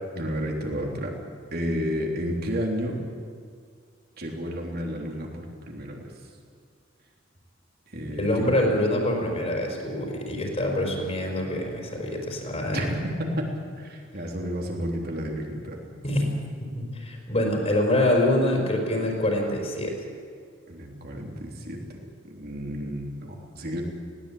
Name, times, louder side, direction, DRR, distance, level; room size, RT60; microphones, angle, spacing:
voice 1, 0.1-1.2 1.5-3.0 4.2-6.1 7.9-8.5 12.7-12.9 13.2-13.5 13.8-15.8 16.1-16.2 20.7-21.8 22.2-23.8, equal, 50° right, 1 dB, 3.5 m, -31 dB
voice 2, 8.2-12.8 16.0-16.3 16.7-20.0, left 1 dB, 35° left, 1 dB, 4.7 m, -25 dB
20.5 x 17.0 x 8.7 m, 2.1 s
head